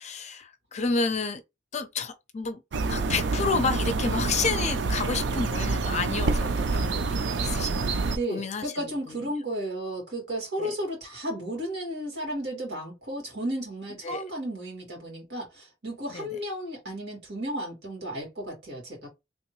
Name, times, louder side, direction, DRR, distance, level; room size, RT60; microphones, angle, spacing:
voice 1, 0.0-1.4 1.7-2.6 2.9-7.9 8.3-9.3 10.6-10.7 14.0-14.2 16.1-16.4, left 4 dB, 40° left, 0.5 m, -30 dB
sound 1, 2.7-8.2, right 3 dB, 85° right, 0.4 m, -27 dB
voice 2, 8.1-19.1, right 1 dB, 70° right, 2.2 m, -33 dB
3.4 x 2.7 x 3.0 m
head